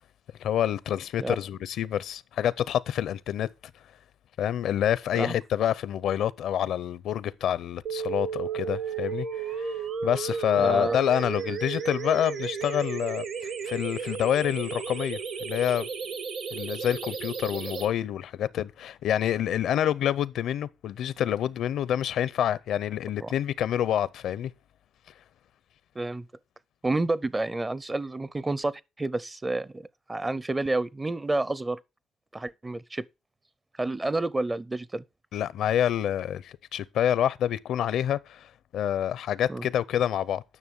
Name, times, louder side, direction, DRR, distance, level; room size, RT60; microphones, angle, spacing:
voice 1, 0.4-3.5 4.4-9.7 10.0-15.9 16.5-24.5 35.3-40.4, left 10 dB, 75° left, 0.6 m, -27 dB
sound 1, 7.9-17.9, right 6 dB, 70° right, 2.2 m, -33 dB
voice 2, 10.6-11.0 23.2-23.3 26.0-26.3 26.8-31.8 32.3-33.1 33.8-35.0 39.5-39.7, right 2 dB, 20° right, 0.6 m, -29 dB
9.9 x 6.2 x 5.3 m
cardioid pair, 90°, 0 cm